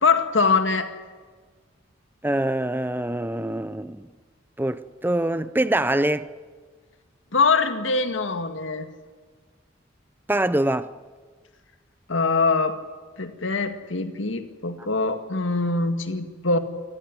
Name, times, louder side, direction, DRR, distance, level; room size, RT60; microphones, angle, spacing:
voice 1, 0.0-0.9 7.3-8.9 12.1-12.8 13.2-16.6, left 4 dB, 90° left, 2.0 m, -23 dB
voice 2, 2.2-4.1 4.6-6.3 10.3-10.9, right 1 dB, 10° right, 0.8 m, -24 dB
28.5 x 15.0 x 9.8 m
head